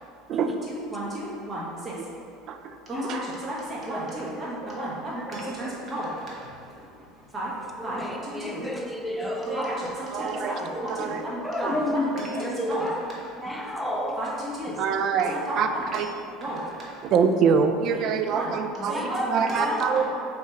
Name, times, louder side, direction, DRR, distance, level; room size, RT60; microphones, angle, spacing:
voice 1, 0.7-1.9 2.9-6.9 7.3-7.5 7.8-8.6 9.5-12.9 13.1-13.3 14.2-14.7 15.3-15.6 15.9-16.0 16.4-17.0 17.9-18.0 18.3-18.5 18.9-20.0, right 1 dB, 30° right, -6 dB, 1.3 m, -33 dB
voice 2, 7.8-9.7 10.2-10.8 11.4-13.0 13.4-14.2 14.6-14.7 15.2-15.3 18.8-19.8, equal, ahead, -1 dB, 0.6 m, -31 dB
voice 3, 10.1-10.7 11.0-11.2 14.8-16.1 17.1-19.0 19.3-20.0, right 6 dB, 55° right, 7 dB, 0.3 m, -24 dB
3.5 x 2.9 x 4.4 m, 2.5 s
supercardioid pair, 95°, 0 cm